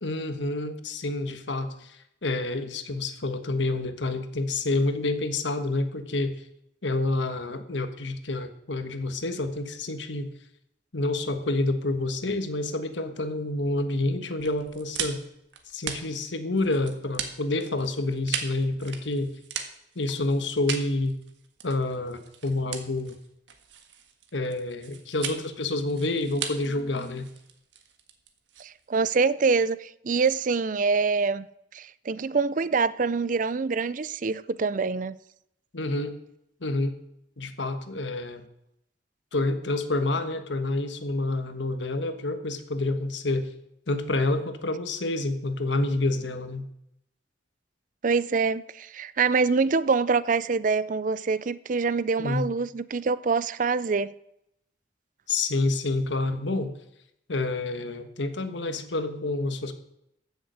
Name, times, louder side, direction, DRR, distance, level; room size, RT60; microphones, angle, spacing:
voice 1, 0.0-6.4 6.8-10.3 10.9-15.2 15.7-19.3 19.9-21.2 21.6-23.2 24.3-27.3 35.7-36.2 36.6-37.0 37.4-38.4 39.3-43.5 43.9-46.7 52.2-52.5 55.3-56.7 57.3-59.7, left 2 dB, 85° left, 1.4 m, -28 dB
sound 1, 14.4-29.1, right 7 dB, 80° right, 1.6 m, -38 dB
voice 2, 28.6-31.5 31.7-35.2 48.0-54.1, right 4 dB, 45° right, 0.5 m, -25 dB
15.0 x 7.2 x 6.4 m
head